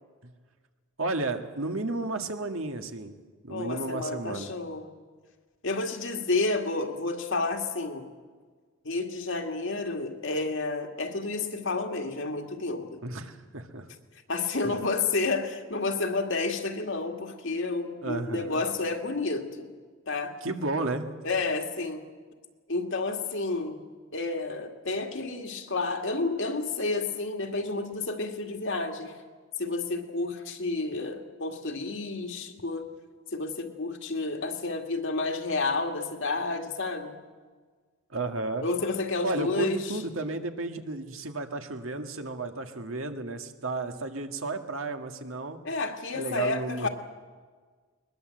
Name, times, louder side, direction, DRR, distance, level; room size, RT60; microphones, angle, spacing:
voice 1, 1.0-3.2 3.4-4.5 13.0-13.9 18.0-18.6 20.4-21.1 38.1-38.7 39.2-45.6 46.1-46.9, right 2 dB, 75° right, 6 dB, 1.8 m, -33 dB
voice 2, 3.5-4.9 5.6-8.1 8.8-13.0 14.3-19.7 20.1-20.4 21.2-22.1 22.7-23.8 24.1-29.1 29.6-32.9 33.3-37.2 38.6-39.9 45.6-46.9, left 3 dB, 65° left, 4 dB, 2.1 m, -30 dB
21.0 x 21.0 x 7.8 m, 1.5 s
head